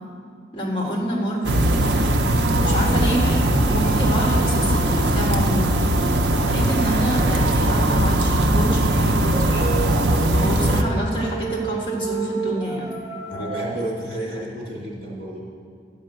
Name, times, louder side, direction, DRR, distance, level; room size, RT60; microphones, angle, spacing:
voice 1, 0.5-2.0 2.6-5.8 6.4-9.6 10.2-13.0, equal, 30° left, -3 dB, 1.6 m, -27 dB
sound 1, 1.4-10.8, right 1 dB, 85° right, 0.7 m, -20 dB
sound 2, 4.4-6.7 8.6-13.7, right 5 dB, 20° right, 0.8 m, -33 dB
voice 2, 13.1-15.4, right 1 dB, 55° right, -5 dB, 2.8 m, -31 dB
11.0 x 5.4 x 7.6 m, 2.2 s
head